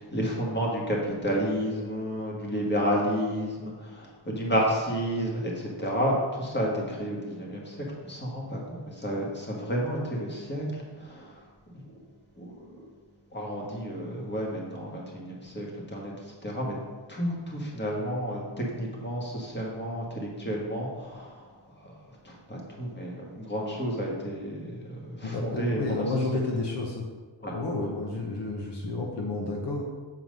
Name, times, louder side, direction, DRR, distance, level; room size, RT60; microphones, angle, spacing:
voice 1, 0.0-10.7 11.0-11.4 11.7-11.8 12.4-12.8 13.3-16.1 16.4-16.7 17.1-21.4 21.8-21.9 22.2-26.1 27.4-27.5, equal, 25° left, -3 dB, 1.8 m, -31 dB
voice 2, 25.2-27.1 27.5-29.8, left 3 dB, 65° left, 0 dB, 1.1 m, -31 dB
7.8 x 4.6 x 5.4 m, 1.4 s
wide cardioid pair, 150°, 45 cm